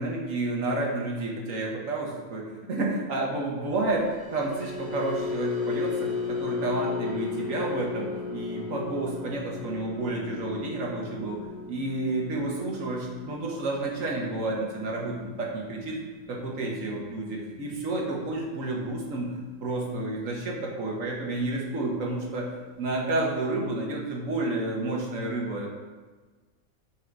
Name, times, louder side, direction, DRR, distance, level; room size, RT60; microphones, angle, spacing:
voice 1, 0.0-4.1 4.3-11.4 11.7-16.0 16.3-22.5 22.8-25.7, right 2 dB, 65° right, -2 dB, 1.5 m, -30 dB
sound 1, 3.9-20.3 20.7-21.0 21.3-21.5, left 4 dB, 10° right, 1.3 m, -36 dB
6.3 x 3.9 x 4.5 m, 1.4 s
omnidirectional pair, 1.5 m